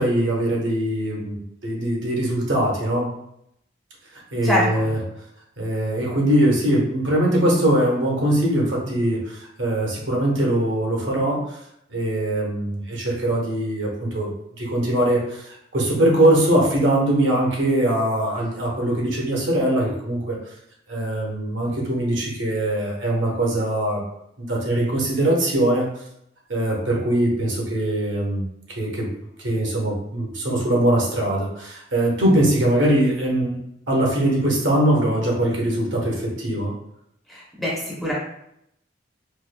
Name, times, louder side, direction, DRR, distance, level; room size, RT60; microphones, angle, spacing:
voice 1, 0.0-1.4 1.6-3.1 4.1-5.0 5.6-11.6 11.9-14.3 14.6-20.4 20.9-24.0 24.4-25.9 26.5-28.4 28.8-29.1 29.4-33.6 33.9-36.7, right 1 dB, 80° right, -3 dB, 1.0 m, -21 dB
voice 2, 4.4-4.9 37.3-38.1, equal, ahead, -5 dB, 0.7 m, -24 dB
4.4 x 2.5 x 2.2 m, 0.77 s
head